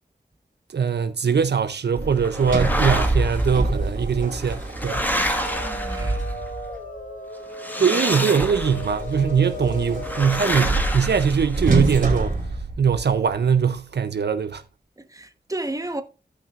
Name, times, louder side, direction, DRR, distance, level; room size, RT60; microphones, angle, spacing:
voice 1, 0.7-5.0 7.8-12.4 12.8-14.6, right 6 dB, 75° right, 0.6 m, -21 dB
Sliding door, 2.0-6.8 8.4-13.3, right 2 dB, 55° right, 2.9 m, -27 dB
sound 1, 2.2-3.5 4.3-6.5 7.5-9.0 10.0-11.9, equal, 10° left, 1.6 m, -28 dB
sound 2, 4.8-10.5, left 1 dB, 50° left, 1.3 m, -36 dB
voice 2, 5.6-6.2 15.0-16.0, right 1 dB, 20° right, 1.1 m, -32 dB
15.0 x 5.9 x 2.4 m
wide cardioid pair, 55°, 18 cm